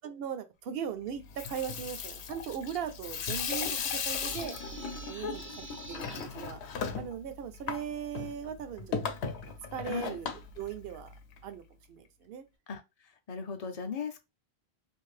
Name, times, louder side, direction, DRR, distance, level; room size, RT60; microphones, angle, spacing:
voice 1, 0.0-4.6 5.1-5.4 5.9-6.6 7.0-9.1 9.5-10.3 10.6-11.1 11.4-11.6 11.9-12.4, right 8 dB, 70° right, 0.8 m, -39 dB
Water tap faucet / Sink (filling or washing), 1.2-11.4, left 6 dB, 80° left, 0.8 m, -37 dB
sound 1, 3.8-6.3, right 1 dB, 20° right, 0.3 m, -48 dB
voice 2, 9.8-10.2 12.7-12.8 13.3-14.2, left 6 dB, 50° left, 0.5 m, -37 dB
2.6 x 2.5 x 3.1 m
omnidirectional pair, 1.1 m